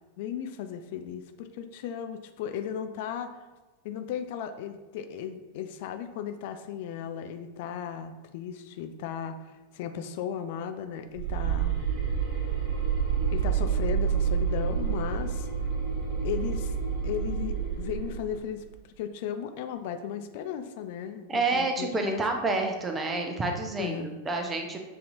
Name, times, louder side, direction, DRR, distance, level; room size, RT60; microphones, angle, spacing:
voice 1, 0.2-3.3 3.8-11.9 13.3-15.5 16.2-16.7 17.0-18.6 19.0-22.2 23.8-24.1, left 8 dB, 50° left, 7 dB, 0.3 m, -36 dB
sound 1, 11.1-18.4, right 7 dB, 45° right, 1.2 m, -28 dB
voice 2, 21.3-24.8, right 3 dB, 15° right, 3 dB, 0.6 m, -29 dB
6.6 x 2.7 x 2.6 m, 1.2 s
figure-of-eight pair, 90°, 0 cm